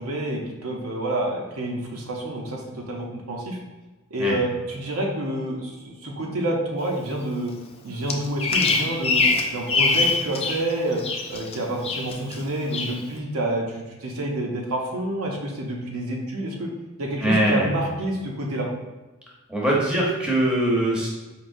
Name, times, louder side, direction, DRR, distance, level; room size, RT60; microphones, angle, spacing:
voice 1, 0.0-3.6 4.1-7.5 7.8-9.2 9.5-11.0 11.3-16.7 17.0-18.7, right 1 dB, 80° right, -1 dB, 0.7 m, -28 dB
Bird vocalization bird call bird song, 8.1-10.6 10.9-11.5 11.8-12.4 12.7-13.0, left 4 dB, 30° left, 0.3 m, -23 dB
voice 2, 17.2-17.7 19.5-21.1, right 1 dB, 5° right, -4 dB, 0.8 m, -22 dB
4.7 x 2.8 x 2.6 m, 1.2 s
head